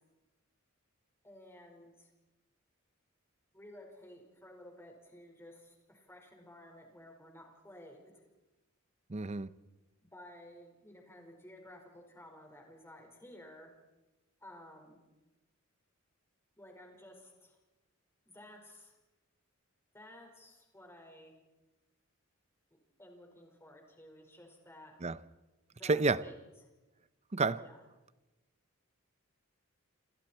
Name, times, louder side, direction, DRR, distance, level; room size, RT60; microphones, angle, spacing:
voice 1, 1.2-2.1 3.5-8.2 10.0-13.7 14.4-15.0 16.6-17.6 18.2-18.9 19.9-21.3 23.0-24.9 25.7-26.4 27.6-27.8, left 1 dB, 10° left, 5.0 m, -54 dB
voice 2, 9.1-9.5 25.0-25.2 25.8-26.2 27.3-27.6, right 3 dB, 30° right, 0.7 m, -29 dB
28.0 x 28.0 x 4.5 m
head